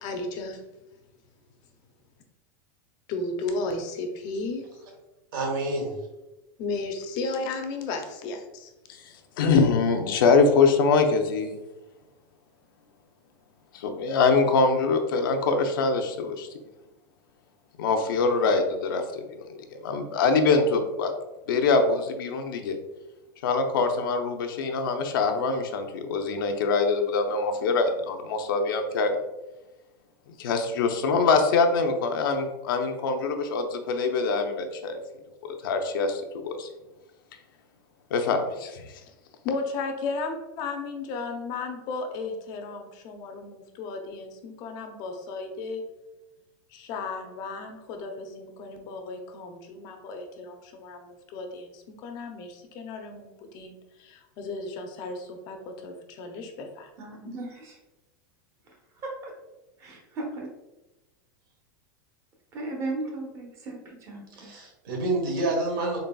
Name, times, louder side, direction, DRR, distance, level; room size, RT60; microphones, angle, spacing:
voice 1, 0.0-0.6 3.1-4.8 6.6-8.7 39.4-45.8 46.7-56.9, left 3 dB, 35° left, 4 dB, 0.5 m, -34 dB
voice 2, 5.3-5.9 64.4-66.0, right 2 dB, 80° right, 0 dB, 1.3 m, -28 dB
voice 3, 9.4-11.6 13.7-16.5 17.8-21.1 21.5-22.8 23.4-29.2 30.4-35.0 35.4-36.7 38.1-38.8, left 4 dB, 80° left, 5 dB, 0.6 m, -24 dB
voice 4, 57.0-57.8 59.0-59.1 60.2-60.5 62.5-64.5, right 2 dB, 25° right, 0 dB, 0.8 m, -35 dB
3.9 x 3.9 x 2.2 m, 1.0 s
supercardioid pair, 165°, 11 cm